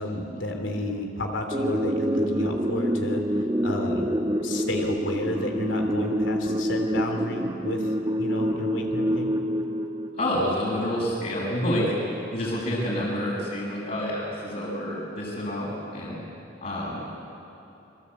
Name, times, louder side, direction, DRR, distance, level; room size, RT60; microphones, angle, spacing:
voice 1, 0.0-4.1 4.4-9.3, left 1 dB, 90° left, 3 dB, 3.2 m, -31 dB
sound 1, 1.5-10.5, equal, 20° right, 1.3 m, -27 dB
voice 2, 10.1-11.9 12.3-16.2 16.6-17.0, equal, 45° left, -8 dB, 6.4 m, -28 dB
28.5 x 22.5 x 8.3 m, 2.9 s
head